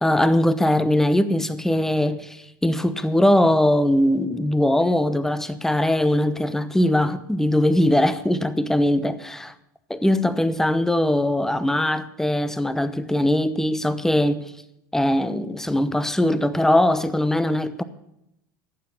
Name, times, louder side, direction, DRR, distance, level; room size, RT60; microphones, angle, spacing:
voice 1, 0.0-9.5 9.9-14.4 14.9-17.8, left 1 dB, 5° left, 0.9 m, -21 dB
12.0 x 8.5 x 8.4 m
hypercardioid pair, 80°, 11 cm